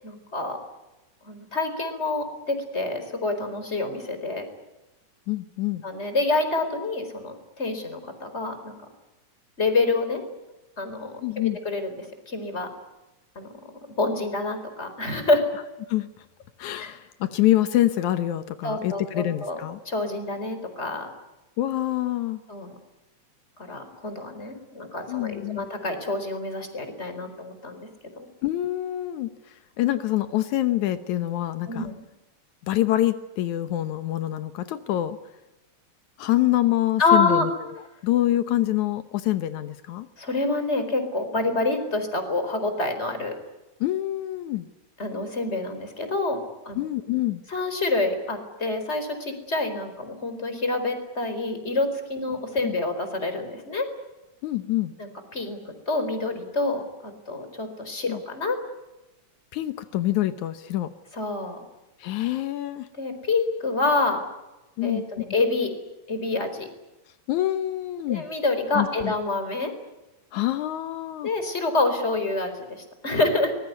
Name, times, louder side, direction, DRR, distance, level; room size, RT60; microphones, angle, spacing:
voice 1, 0.0-0.6 1.3-4.5 5.8-8.8 9.6-10.2 10.8-11.2 11.6-12.0 12.3-12.7 13.3-13.5 14.0-15.4 16.8-16.9 18.6-19.6 19.8-21.1 22.5-22.7 23.7-27.9 28.2-28.3 31.7-32.0 37.0-37.5 40.2-43.3 45.0-46.4 46.6-46.8 47.5-53.9 55.0-58.6 61.1-61.6 63.0-64.2 64.8-65.7 66.1-66.7 68.1-69.7 71.2-73.5, left 3 dB, 20° left, 8 dB, 4.5 m, -27 dB
voice 2, 5.3-5.8 11.2-11.6 15.9-16.1 16.6-19.8 21.6-22.4 25.1-25.7 28.4-29.3 29.8-31.9 32.6-35.2 36.2-37.5 38.0-40.1 43.8-44.7 46.8-47.4 52.6-52.8 54.4-54.9 58.1-58.2 59.5-60.9 62.0-62.9 64.8-65.0 67.3-68.3 68.7-69.1 70.3-71.3, left 14 dB, 80° left, 11 dB, 2.4 m, -25 dB
24.0 x 21.0 x 9.5 m, 1.0 s
omnidirectional pair, 3.3 m